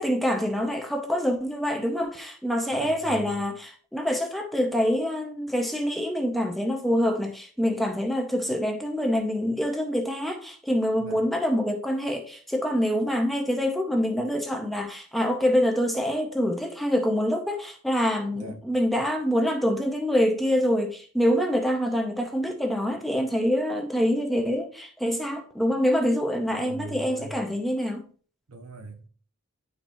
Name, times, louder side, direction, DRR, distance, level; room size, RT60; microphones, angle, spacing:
voice 1, 0.0-28.0, equal, ahead, 0.5 m, -26 dB
voice 2, 2.7-3.4 11.0-11.2 18.3-18.6 26.5-27.4 28.5-29.1, right 2 dB, 75° right, 0.9 m, -40 dB
10.0 x 4.5 x 2.6 m
head